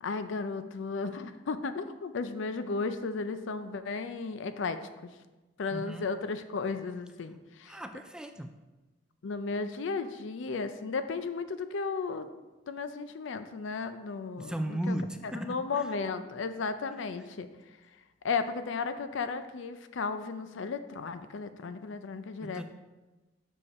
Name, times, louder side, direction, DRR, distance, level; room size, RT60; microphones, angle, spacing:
voice 1, 0.0-5.1 5.6-7.8 9.2-12.3 12.7-14.9 15.4-17.5 18.2-22.6, left 4 dB, 70° left, 10 dB, 0.5 m, -34 dB
voice 2, 5.7-6.2 7.7-8.5 14.4-15.9 22.4-22.6, right 1 dB, 5° right, 7 dB, 0.3 m, -36 dB
6.5 x 5.5 x 4.1 m, 1.1 s
head